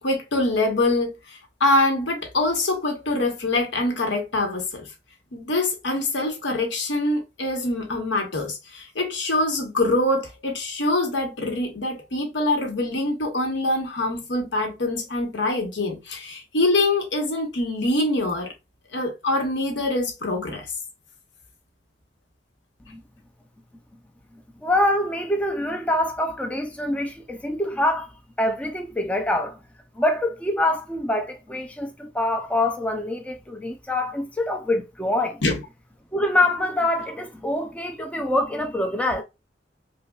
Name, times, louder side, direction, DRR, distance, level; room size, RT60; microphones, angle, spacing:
voice 1, 0.0-4.9 5.3-18.5 18.9-20.7 35.4-35.6, left 2 dB, 80° left, 1.0 m, -24 dB
voice 2, 24.6-28.1 28.4-29.6 30.0-35.4 36.1-39.2, left 1 dB, 5° left, 0.4 m, -25 dB
5.1 x 2.2 x 2.3 m
head